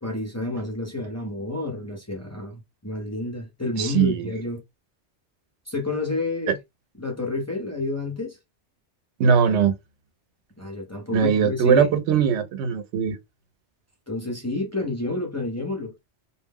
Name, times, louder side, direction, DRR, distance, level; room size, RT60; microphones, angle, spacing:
voice 1, 0.0-4.6 5.7-6.6 7.0-8.4 10.6-11.9 14.1-15.9, left 2 dB, 15° left, 0.7 m, -29 dB
voice 2, 3.8-4.2 9.2-9.7 11.1-13.2, right 7 dB, 90° right, 0.9 m, -20 dB
2.3 x 2.1 x 3.4 m
omnidirectional pair, 1.1 m